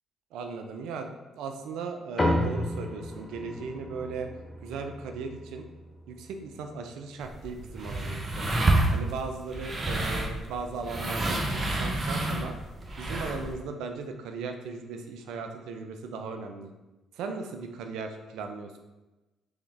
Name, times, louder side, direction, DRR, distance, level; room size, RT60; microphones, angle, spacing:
voice 1, 0.3-4.3 4.6-5.7 6.1-8.5 8.9-12.6 13.0-16.7 17.1-18.8, right 4 dB, 75° right, 5 dB, 0.4 m, -37 dB
sound 1, 2.2-6.9, left 1 dB, 30° left, 0.8 m, -33 dB
sound 2, 7.2-13.5, right 2 dB, 40° right, 0.8 m, -29 dB
3.5 x 3.5 x 3.4 m, 1.1 s
hypercardioid pair, 50°, 0 cm